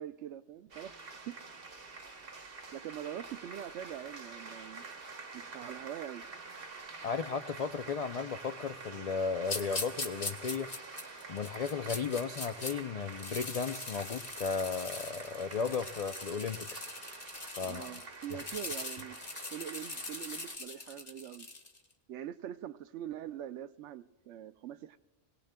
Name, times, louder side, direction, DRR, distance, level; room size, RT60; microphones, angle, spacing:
voice 1, 0.0-1.4 2.7-4.8 5.3-6.2 17.6-19.2 19.5-21.5 22.1-25.0, right 10 dB, 80° right, 0.9 m, -43 dB
sound 1, 0.7-20.6, right 3 dB, 55° right, 1.2 m, -48 dB
voice 2, 7.0-10.7 11.3-16.9 17.6-17.9, left 5 dB, 65° left, 0.3 m, -35 dB
sound 2, 9.5-12.7 13.1-21.8, left 3 dB, 40° left, 1.1 m, -42 dB
21.5 x 18.0 x 2.2 m
omnidirectional pair, 1.2 m